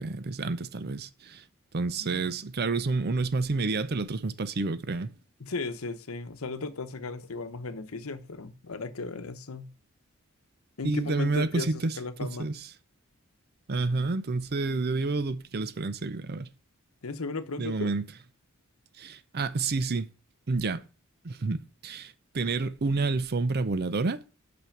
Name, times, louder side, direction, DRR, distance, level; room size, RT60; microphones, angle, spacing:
voice 1, 0.0-1.4 1.7-5.1 10.8-12.6 13.7-16.5 17.6-18.0 19.0-20.1 20.5-20.8 21.2-24.4, right 3 dB, 50° right, 0.6 m, -29 dB
voice 2, 2.0-2.3 5.4-9.7 10.8-12.5 17.0-17.9, left 3 dB, 75° left, 0.9 m, -36 dB
6.1 x 5.8 x 7.2 m
head